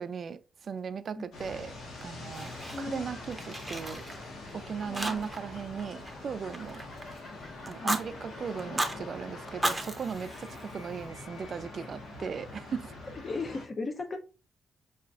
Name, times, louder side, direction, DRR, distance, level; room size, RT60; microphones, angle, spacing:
voice 1, 0.0-1.7 2.0-2.5 2.8-4.0 4.5-6.8 7.7-12.9, right 6 dB, 50° right, 0.3 m, -37 dB
sound 1, 1.3-13.6, left 2 dB, 80° left, 1.2 m, -44 dB
Fire, 1.9-3.0 3.3-4.5 4.9-5.5 5.8-7.2 7.7-8.0 8.6-9.0 9.5-11.1, right 1 dB, 10° right, 0.6 m, -35 dB
sound 2, 2.5-9.9, left 1 dB, 55° left, 1.8 m, -53 dB
voice 2, 2.7-3.0 4.8-5.3 7.8-8.0 13.2-14.2, left 3 dB, 35° left, 0.5 m, -36 dB
5.7 x 2.4 x 2.3 m
cardioid pair, 110°, 0 cm